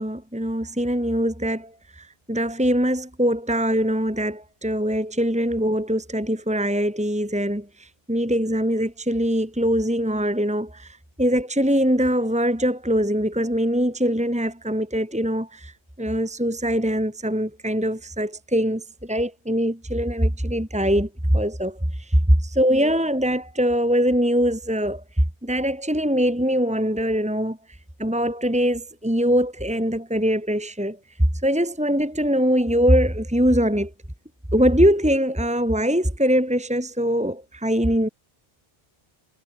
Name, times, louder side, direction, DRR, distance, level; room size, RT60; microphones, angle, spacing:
voice 1, 0.0-15.7 16.0-25.0 25.4-27.6 28.0-31.0 31.4-33.9 34.5-38.1, equal, 5° right, 2.3 m, -22 dB
omnidirectional pair, 1.0 m